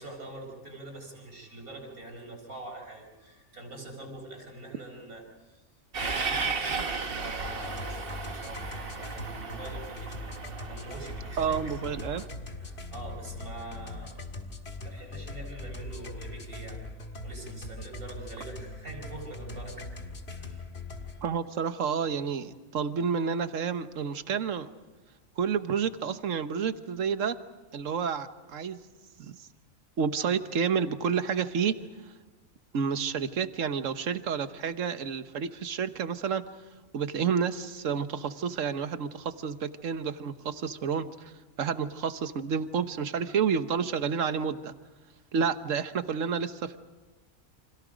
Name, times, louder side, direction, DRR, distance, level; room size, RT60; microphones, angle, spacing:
voice 1, 0.0-5.6 6.0-11.8 12.1-14.2 14.8-16.8 17.2-19.9 20.4-20.6, right 2 dB, 85° right, 2 dB, 5.1 m, -44 dB
Train, 5.9-12.3, right 4 dB, 40° right, 1.5 m, -35 dB
sound 1, 7.4-21.2, left 2 dB, 50° left, 2.1 m, -41 dB
voice 2, 11.4-12.2 21.2-24.7 25.4-27.4 27.7-28.8 29.2-29.4 30.0-31.8 32.7-36.4 36.9-41.3 41.6-44.7 45.3-46.8, right 6 dB, 65° right, 10 dB, 1.4 m, -30 dB
30.0 x 26.5 x 5.1 m, 1.2 s
omnidirectional pair, 1.5 m